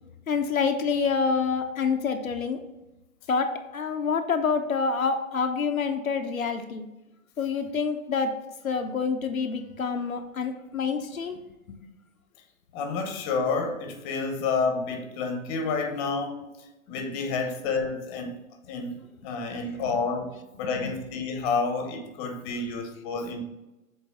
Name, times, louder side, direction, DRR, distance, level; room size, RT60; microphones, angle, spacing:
voice 1, 0.3-2.6 3.3-6.9 7.4-8.3 8.6-11.4 20.8-20.9, left 5 dB, 80° left, 4 dB, 0.8 m, -27 dB
voice 2, 12.7-16.5 16.9-18.3 18.7-19.0 19.2-20.3 20.6-23.4, left 4 dB, 30° left, 5 dB, 1.0 m, -29 dB
7.2 x 3.9 x 3.9 m, 1.0 s
figure-of-eight pair, 115°, 41 cm